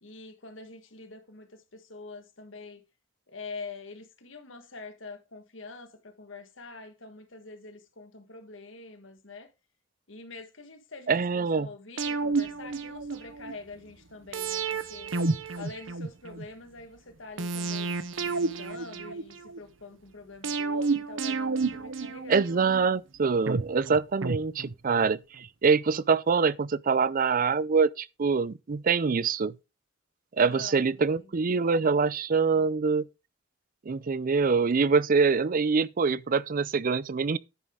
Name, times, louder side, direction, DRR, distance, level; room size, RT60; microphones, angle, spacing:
voice 1, 0.0-2.8 3.3-9.5 10.1-15.2 15.6-18.0 18.2-22.7 30.4-31.3, left 3 dB, 75° left, 1.7 m, -45 dB
voice 2, 11.1-11.7 22.3-29.5 30.4-33.1 33.9-37.4, right 5 dB, 45° right, 0.5 m, -25 dB
sound 1, 12.0-13.5 14.3-16.5 17.4-19.6 20.4-22.8 23.5-25.1 25.4-25.5, right 4 dB, 75° right, 1.0 m, -31 dB
10.5 x 8.0 x 3.8 m
head